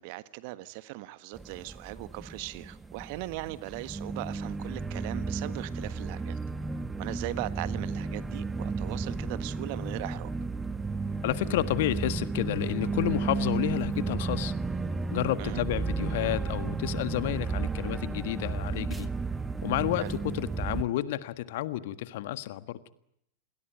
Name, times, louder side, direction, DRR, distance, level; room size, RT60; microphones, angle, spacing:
voice 1, 0.0-6.4 7.0-10.3 15.4-15.6 20.0-20.1, right 18 dB, 50° right, 14 dB, 1.4 m, -39 dB
sound 1, 1.3-20.8, right 4 dB, 10° right, 1.5 m, -33 dB
voice 2, 11.2-14.5 15.1-19.1 19.6-22.8, left 14 dB, 55° left, 13 dB, 1.5 m, -30 dB
28.5 x 21.5 x 9.2 m, 0.77 s
figure-of-eight pair, 90°, 0 cm